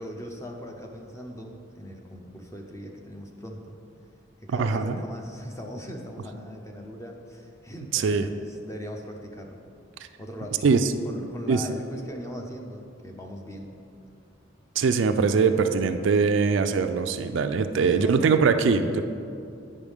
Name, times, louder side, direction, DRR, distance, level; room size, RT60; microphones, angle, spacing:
voice 1, 0.0-3.8 4.4-9.6 10.2-10.6 11.0-13.8 16.0-16.3 17.7-18.3, equal, 15° left, 2 dB, 0.5 m, -40 dB
voice 2, 4.5-5.0 7.9-8.3 10.6-10.9 11.5-11.6 14.8-19.0, right 5 dB, 65° right, 8 dB, 0.3 m, -22 dB
9.5 x 5.5 x 3.5 m, 2.5 s
head